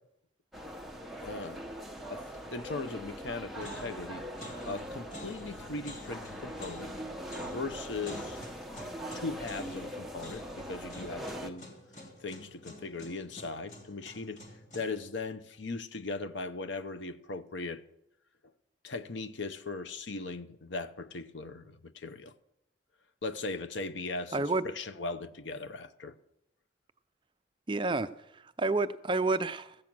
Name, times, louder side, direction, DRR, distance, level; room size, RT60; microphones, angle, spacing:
sound 1, 0.5-11.5, equal, ahead, 0.8 m, -42 dB
voice 1, 1.2-1.6 2.1-2.2 2.5-4.2 4.7-6.9 7.4-8.4 9.1-11.7 12.2-14.4 14.7-17.8 18.8-22.3 23.2-26.2, left 3 dB, 75° left, 0.8 m, -39 dB
sound 2, 2.9-3.3 3.6-15.1, left 1 dB, 40° left, 2.8 m, -49 dB
voice 2, 24.3-24.6 27.7-29.8, right 3 dB, 25° right, 0.5 m, -30 dB
14.0 x 8.7 x 6.1 m
head